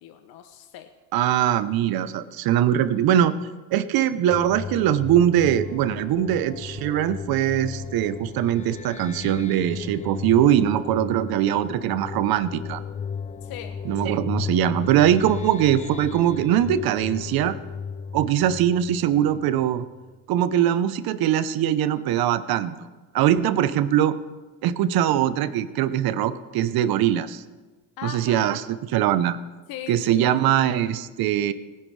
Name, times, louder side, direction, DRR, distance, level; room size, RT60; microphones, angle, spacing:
voice 1, 0.0-0.9 13.4-13.8 28.0-28.5 29.7-30.3, left 10 dB, 60° left, 7 dB, 1.0 m, -38 dB
voice 2, 1.1-3.3 3.7-12.8 13.8-17.6 18.1-19.9 20.3-22.9 23.1-24.2 24.6-27.4 28.0-29.4 29.9-31.5, right 11 dB, 60° right, 13 dB, 1.0 m, -22 dB
sound 1, 4.3-19.8, left 6 dB, 20° left, 0.4 m, -35 dB
19.0 x 10.5 x 3.4 m, 1.3 s
supercardioid pair, 80°, 41 cm